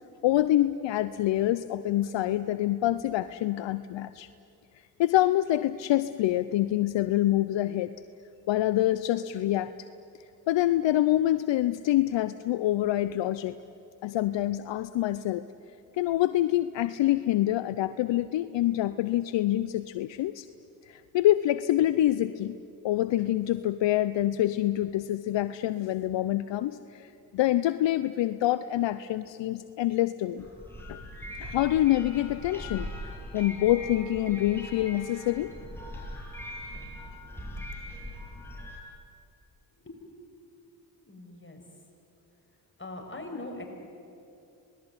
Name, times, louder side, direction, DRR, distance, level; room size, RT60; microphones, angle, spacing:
voice 1, 0.2-4.3 5.0-7.9 8.5-9.7 10.5-13.6 14.0-15.4 15.9-20.5 20.8-22.6 22.8-30.5 30.9-31.0 31.4-35.5, left 14 dB, 65° left, 14 dB, 0.8 m, -26 dB
sound 1, 30.4-38.8, left 1 dB, 5° left, 7.6 m, -41 dB
voice 2, 41.0-41.6 42.8-43.6, left 2 dB, 25° left, 2 dB, 6.9 m, -41 dB
26.0 x 20.0 x 9.8 m, 2.7 s
hypercardioid pair, 40°, 47 cm